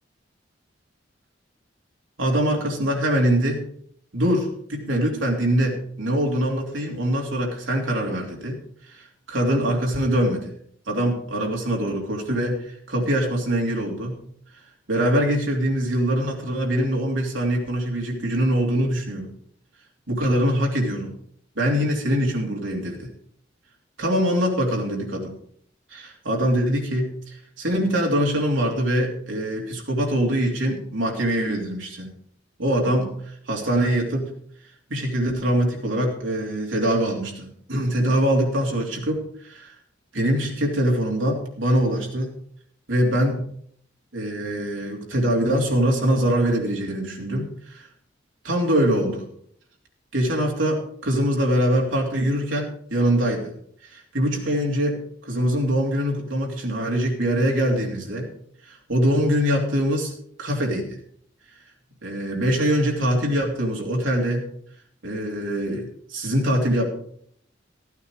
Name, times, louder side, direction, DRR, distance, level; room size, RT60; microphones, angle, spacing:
voice 1, 2.2-3.6 4.1-8.6 8.8-10.5 10.9-14.2 14.9-19.3 20.1-21.1 21.5-23.1 24.0-25.3 25.9-32.1 32.6-34.3 34.9-39.7 40.1-42.4 42.9-43.4 44.1-47.9 48.4-49.2 50.1-53.5 53.8-58.3 58.6-60.1 60.4-61.0 62.0-64.4 65.0-66.9, equal, 90° right, 0 dB, 3.1 m, -23 dB
14.0 x 9.1 x 4.9 m, 0.64 s
head